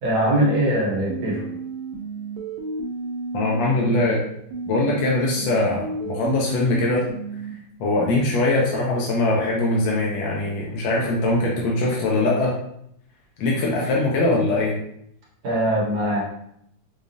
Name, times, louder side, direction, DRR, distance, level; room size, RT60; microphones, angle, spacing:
voice 1, 0.0-1.4 15.4-16.2, right 1 dB, 60° right, -4 dB, 1.3 m, -21 dB
sound 1, 1.1-4.1 4.5-7.5, right 3 dB, 80° right, 1.4 m, -32 dB
voice 2, 3.3-4.2 4.7-7.0 7.8-12.5 13.4-14.7, left 2 dB, 75° left, -4 dB, 1.3 m, -22 dB
4.8 x 2.4 x 2.6 m, 0.73 s
omnidirectional pair, 2.1 m